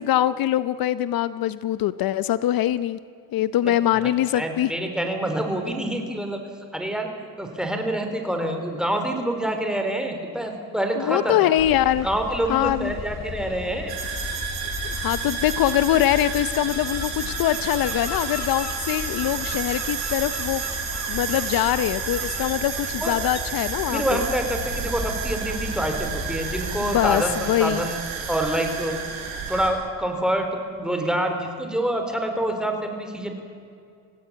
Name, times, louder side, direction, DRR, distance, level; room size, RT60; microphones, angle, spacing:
voice 1, 0.0-3.0 3.3-4.7 5.6-5.7 11.0-12.1 12.5-13.0 14.9-20.6 21.1-24.2 26.8-27.9, left 12 dB, 65° left, 15 dB, 0.8 m, -23 dB
voice 2, 4.0-6.4 6.7-7.1 7.4-11.4 12.0-13.9 23.0-23.2 23.9-28.0 28.3-29.0 29.5-33.4, right 1 dB, ahead, 4 dB, 4.0 m, -26 dB
sound 1, 11.6-27.2, left 5 dB, 45° left, 2.5 m, -36 dB
sound 2, 13.9-29.7, right 6 dB, 80° right, 6.5 m, -31 dB
26.0 x 17.5 x 8.7 m, 2.4 s
cardioid pair, 115°, 37 cm